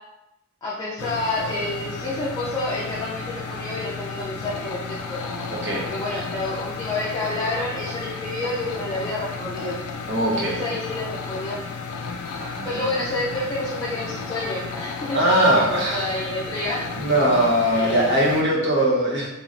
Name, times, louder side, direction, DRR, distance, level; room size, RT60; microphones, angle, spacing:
voice 1, 0.6-5.2 5.8-9.7 10.3-11.6 12.6-15.2 15.6-16.8 17.7-18.1, left 2 dB, 20° left, -8 dB, 0.4 m, -29 dB
sound 1, 1.0-18.4, left 4 dB, 85° left, 0.3 m, -33 dB
voice 2, 5.5-5.9 10.1-10.6 12.4-13.2 15.1-16.1 17.0-19.3, right 1 dB, 55° right, -4 dB, 0.8 m, -21 dB
3.0 x 2.1 x 2.4 m, 0.91 s
head